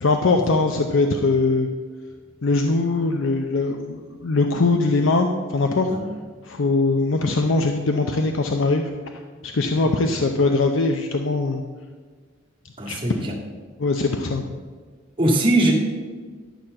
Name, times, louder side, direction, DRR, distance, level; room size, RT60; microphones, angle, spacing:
voice 1, 0.0-1.7 2.4-5.9 6.4-8.9 9.4-11.6 12.9-13.3 13.8-14.5, left 3 dB, 80° left, 4 dB, 0.7 m, -21 dB
voice 2, 12.8-13.3 15.2-15.7, right 1 dB, 25° right, -3 dB, 1.9 m, -20 dB
11.5 x 4.4 x 7.6 m, 1.5 s
head